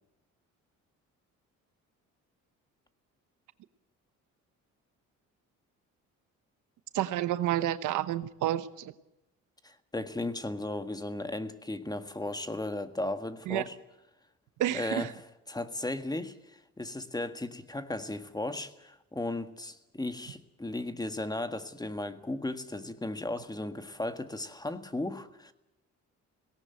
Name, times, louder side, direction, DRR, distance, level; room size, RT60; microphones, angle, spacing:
voice 1, 6.9-8.9 13.5-13.6 14.6-15.1, right 13 dB, 85° right, 13 dB, 1.0 m, -30 dB
voice 2, 9.6-13.7 14.7-25.5, left 2 dB, 15° left, 9 dB, 1.7 m, -36 dB
18.0 x 17.5 x 9.1 m, 0.93 s
cardioid pair, 90°, 30 cm